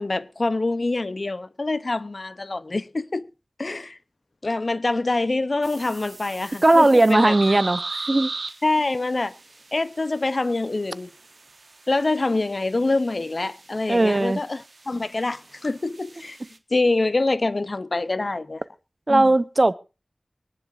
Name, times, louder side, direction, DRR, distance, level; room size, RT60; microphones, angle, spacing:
voice 1, 0.0-3.3 3.6-4.0 4.4-7.4 8.6-9.3 9.7-11.1 11.9-16.4 16.7-18.6 19.1-19.3, left 2 dB, 60° left, 0.6 m, -25 dB
sound 1, 5.6-16.6, right 3 dB, 75° right, 1.3 m, -39 dB
voice 2, 6.6-8.3 13.9-14.4 19.1-19.7, right 2 dB, 45° right, 0.7 m, -18 dB
24.0 x 10.5 x 2.5 m
wide cardioid pair, 55°, 0 cm